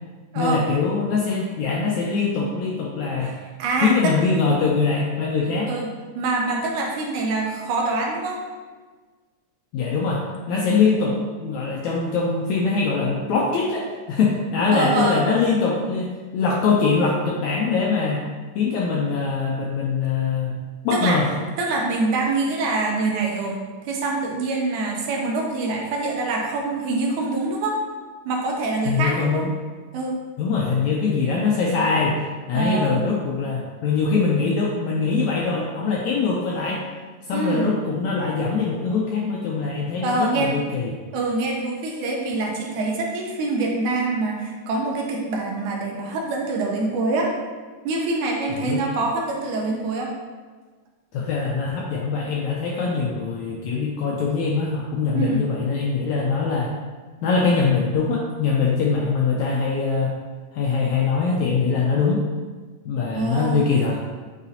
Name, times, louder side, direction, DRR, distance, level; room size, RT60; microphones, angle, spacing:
voice 1, 0.3-3.3 3.8-5.7 9.7-18.2 18.5-21.3 28.8-29.5 30.4-36.8 37.3-40.9 48.5-48.8 51.1-56.7 57.2-60.1 60.5-62.3 62.8-64.0, left 4 dB, 85° left, -3 dB, 1.6 m, -23 dB
voice 2, 3.6-4.1 5.7-5.9 6.2-8.4 14.7-15.5 20.9-21.2 21.6-27.8 28.3-29.4 29.9-30.2 32.5-33.0 37.3-37.7 40.0-40.5 41.1-47.3 47.8-50.1 55.1-55.4 63.1-63.7, right 3 dB, 75° right, 0 dB, 2.0 m, -25 dB
8.6 x 4.0 x 2.8 m, 1.4 s
omnidirectional pair, 3.9 m